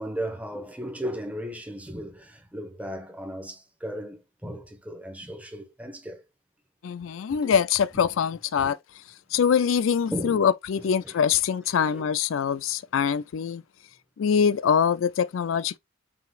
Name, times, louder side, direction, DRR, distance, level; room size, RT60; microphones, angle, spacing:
voice 1, 0.0-6.2 7.4-7.5 8.6-8.7 10.1-11.4 11.8-12.1, equal, 5° right, 1.0 m, -36 dB
voice 2, 6.8-8.8 9.3-13.6 14.2-15.8, left 7 dB, 75° left, 0.4 m, -24 dB
5.7 x 3.9 x 2.3 m
head